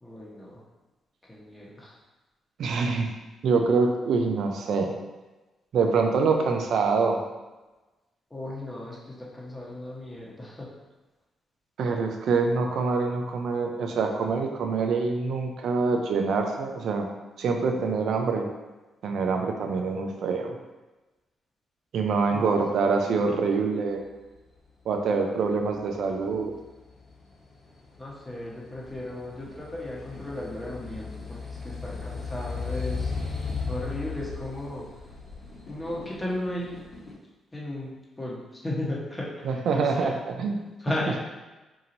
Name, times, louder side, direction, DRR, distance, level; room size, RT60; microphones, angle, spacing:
voice 1, 0.0-0.6 1.3-1.9 8.3-10.7 22.3-22.4 28.0-33.1 33.7-34.8 35.7-36.7 37.5-40.1 40.8-41.2, left 1 dB, 20° left, -4 dB, 1.1 m, -35 dB
voice 2, 2.6-3.1 3.4-5.0 5.7-7.2 11.8-17.1 17.4-18.5 19.0-20.6 21.9-24.0 24.9-26.5 39.4-40.6, right 4 dB, 75° right, 3 dB, 0.4 m, -25 dB
sound 1, 25.8-37.1, left 4 dB, 50° left, 1.2 m, -37 dB
2.9 x 2.7 x 3.9 m, 1.1 s
cardioid pair, 70°, 0 cm